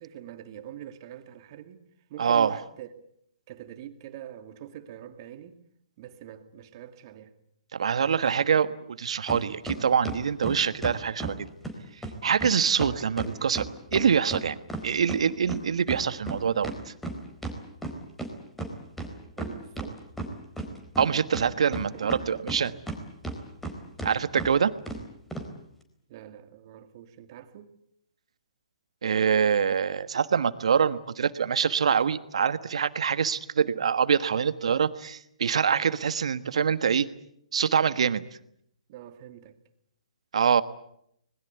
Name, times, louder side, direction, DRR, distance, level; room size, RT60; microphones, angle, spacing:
voice 1, 0.0-2.9 3.5-5.6 6.0-7.3 8.2-8.5 19.4-20.0 21.9-22.4 26.1-27.8 38.9-39.6, right 11 dB, 40° right, 2.2 m, -44 dB
voice 2, 2.2-2.6 7.7-11.5 12.2-13.7 13.9-14.6 14.8-16.7 21.0-22.7 24.0-24.7 29.0-37.1 37.5-38.2 40.3-40.6, right 7 dB, 65° right, 1.4 m, -25 dB
sound 1, 9.3-9.4 9.7-11.4 11.6-11.7 12.0-12.1 12.4-12.5 12.8-15.2 15.5-18.3 18.6-18.7 19.0-19.9 20.2-21.1 21.3-23.0 23.2-23.7 24.0-24.1 24.4-24.5 24.9-25.0 25.3-25.5, right 2 dB, 5° left, 4.3 m, -34 dB
26.0 x 21.0 x 8.2 m
hypercardioid pair, 130°, 4 cm